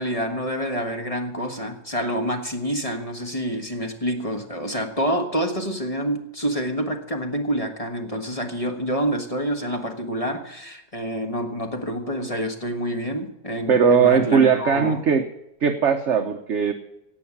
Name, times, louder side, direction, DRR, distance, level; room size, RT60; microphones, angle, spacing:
voice 1, 0.0-15.0, equal, 20° left, 4 dB, 1.4 m, -27 dB
voice 2, 13.7-15.2 15.6-16.7, right 6 dB, 50° right, 6 dB, 1.0 m, -19 dB
17.5 x 5.8 x 8.6 m, 0.88 s
omnidirectional pair, 1.8 m